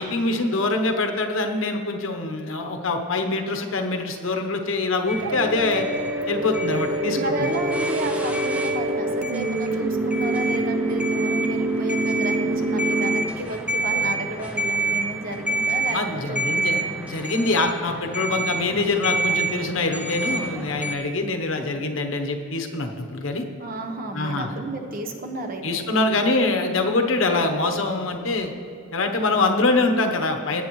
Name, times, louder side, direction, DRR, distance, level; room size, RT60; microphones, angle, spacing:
voice 1, 0.0-5.9 6.3-7.5 15.9-23.4 24.1-24.5 25.6-28.5 28.9-30.6, left 2 dB, 70° left, 4 dB, 1.0 m, -24 dB
sound 1, 5.1-21.0, right 2 dB, 5° right, 0.5 m, -29 dB
sound 2, 5.2-13.2, right 1 dB, 75° right, 0.7 m, -25 dB
voice 2, 7.0-16.9 23.6-25.9, right 1 dB, 45° right, 4 dB, 1.0 m, -32 dB
18.0 x 7.9 x 3.1 m, 2.6 s
head